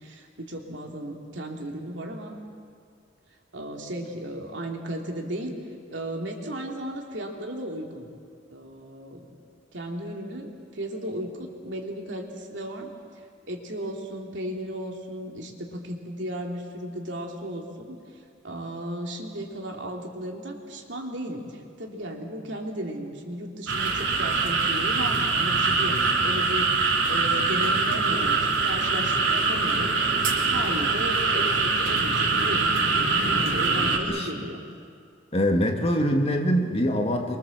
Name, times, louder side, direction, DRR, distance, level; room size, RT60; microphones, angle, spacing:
voice 1, 0.0-2.4 3.5-5.6 5.9-8.1 8.5-9.3 9.7-12.9 13.5-34.6, right 1 dB, 70° right, 1 dB, 3.1 m, -35 dB
sound 1, 23.7-34.0, right 4 dB, 90° right, 3.0 m, -23 dB
voice 2, 35.3-37.4, equal, 30° left, 3 dB, 1.9 m, -24 dB
25.5 x 23.5 x 7.4 m, 2.2 s
head